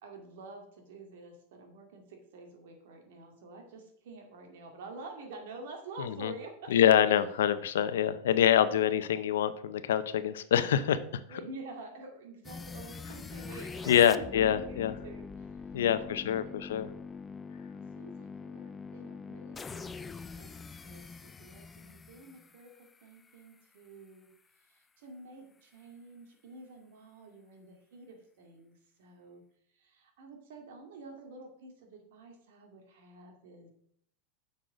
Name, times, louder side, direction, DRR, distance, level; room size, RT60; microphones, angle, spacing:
voice 1, 0.0-6.7 11.3-15.6 15.9-16.6 17.7-20.5 20.8-24.3 24.7-29.4 29.7-33.7, right 3 dB, 75° right, 3 dB, 2.1 m, -49 dB
voice 2, 6.0-6.3 6.7-11.2 13.9-14.9 15.7-16.9, left 10 dB, 90° left, 13 dB, 0.6 m, -26 dB
sound 1, 12.4-23.4, left 5 dB, 15° left, 0.4 m, -44 dB
6.6 x 6.0 x 5.1 m, 0.68 s
supercardioid pair, 130°, 0 cm